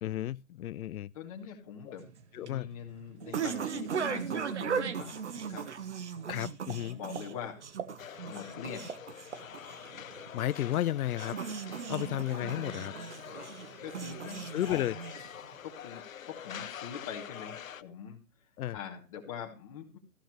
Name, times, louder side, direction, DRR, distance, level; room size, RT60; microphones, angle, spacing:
voice 1, 0.0-1.1 1.9-2.0 2.3-2.7 6.3-7.0 10.3-11.4 11.9-12.9 14.5-14.9 18.6-18.8, left 13 dB, 90° left, 0.5 m, -33 dB
voice 2, 1.1-2.0 2.4-5.6 6.8-7.6 8.2-8.8 13.8-14.4 14.7-14.8 15.6-18.2 18.7-20.0, left 7 dB, 25° left, 2.5 m, -43 dB
sound 1, 2.0-15.5, right 7 dB, 55° right, 1.3 m, -38 dB
sound 2, 8.0-17.8, left 9 dB, 70° left, 0.9 m, -45 dB
15.0 x 13.0 x 3.2 m
hypercardioid pair, 175°, 42 cm